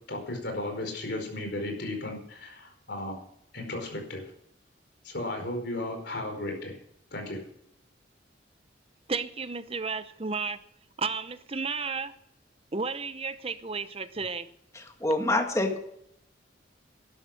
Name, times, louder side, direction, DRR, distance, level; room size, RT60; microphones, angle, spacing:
voice 1, 0.1-3.3 3.5-4.3 5.0-6.8 7.1-7.4, left 1 dB, 60° left, 4.8 m, -35 dB
voice 2, 9.1-10.6 11.0-12.1 12.7-14.5, right 4 dB, 30° right, 0.7 m, -33 dB
voice 3, 14.7-15.8, left 1 dB, 15° left, 1.8 m, -26 dB
13.0 x 12.0 x 6.3 m
head